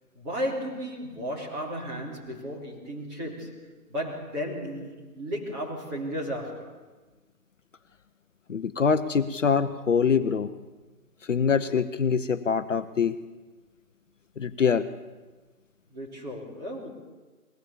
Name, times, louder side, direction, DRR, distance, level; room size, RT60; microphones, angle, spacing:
voice 1, 0.1-6.8 15.9-16.9, equal, 15° right, -4 dB, 3.0 m, -34 dB
voice 2, 8.5-10.5 11.3-13.1 14.4-14.9, left 6 dB, 55° left, 10 dB, 0.8 m, -24 dB
21.5 x 17.5 x 7.0 m, 1.3 s
figure-of-eight pair, 160°, 46 cm